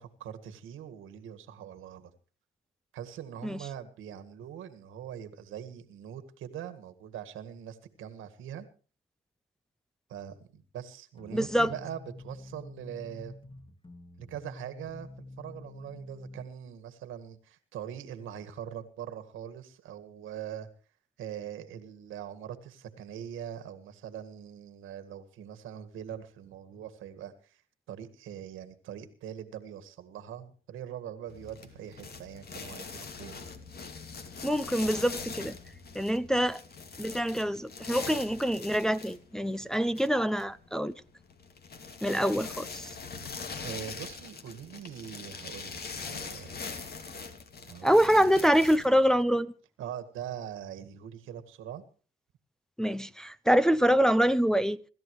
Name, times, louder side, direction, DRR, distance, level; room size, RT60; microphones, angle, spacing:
voice 1, 0.0-2.1 2.9-8.7 10.1-13.3 14.2-20.7 21.2-27.6 27.9-33.5 43.6-46.6 47.6-48.3 49.8-51.8, right 9 dB, 85° right, 1.9 m, -42 dB
sound 1, 11.2-16.5, left 2 dB, 25° left, 2.3 m, -48 dB
voice 2, 11.3-11.7 34.4-35.6 35.9-36.6 37.0-40.9 42.0-42.9 47.8-49.5 52.8-54.8, equal, 5° left, 0.7 m, -25 dB
sound 2, 31.3-49.2, left 4 dB, 50° left, 2.5 m, -42 dB
26.5 x 13.5 x 3.2 m
cardioid pair, 90°, 20 cm